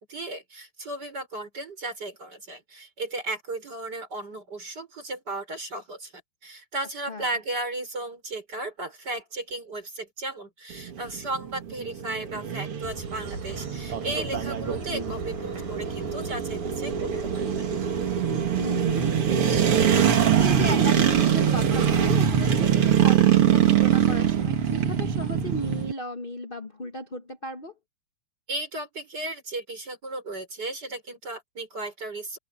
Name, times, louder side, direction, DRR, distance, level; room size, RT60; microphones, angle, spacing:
voice 1, 0.0-17.5 28.5-32.4, right 2 dB, 30° right, 6.0 m, -35 dB
sound 1, 10.7-25.9, right 9 dB, 45° right, 2.6 m, -23 dB
sound 2, 12.8-25.9, right 3 dB, 85° right, 8.8 m, -39 dB
voice 2, 18.5-27.7, left 1 dB, 25° left, 1.2 m, -35 dB
open air
omnidirectional pair, 3.7 m